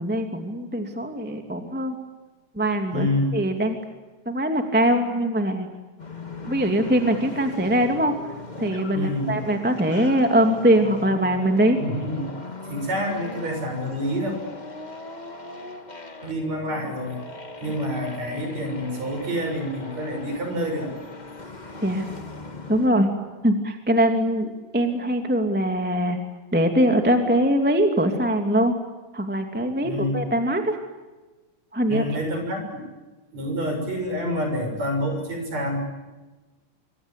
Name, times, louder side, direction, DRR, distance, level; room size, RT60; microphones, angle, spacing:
voice 1, 0.0-2.0 2.5-3.8 4.3-5.7 6.5-8.1 8.6-11.8 21.8-22.1 22.7-23.1 23.4-26.2 26.5-28.8 29.1-30.8 31.7-32.0, right 1 dB, 5° right, 5 dB, 2.0 m, -22 dB
voice 2, 2.9-3.3 8.9-9.4 11.8-12.2 12.7-14.3 16.2-17.2 17.6-20.9 29.8-30.3 31.9-32.9 33.3-35.8, equal, 50° right, 4 dB, 7.7 m, -27 dB
sound 1, 6.0-22.9, left 2 dB, 25° left, 1.0 m, -39 dB
26.0 x 25.0 x 8.4 m, 1.2 s
omnidirectional pair, 3.9 m